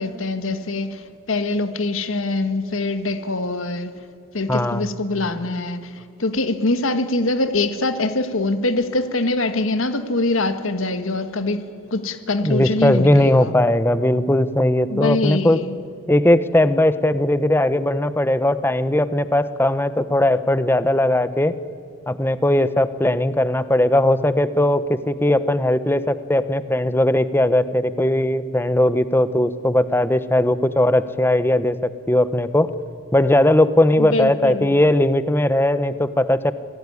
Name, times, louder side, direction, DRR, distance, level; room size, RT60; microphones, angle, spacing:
voice 1, 0.0-3.9 4.3-11.6 11.9-13.5 14.9-15.8 34.0-34.7, left 2 dB, 75° left, 10 dB, 1.6 m, -23 dB
voice 2, 4.5-4.9 12.4-15.6 16.1-21.6 22.1-32.7 33.1-36.5, left 1 dB, 10° left, 13 dB, 0.9 m, -18 dB
26.5 x 18.0 x 9.9 m, 2.5 s
head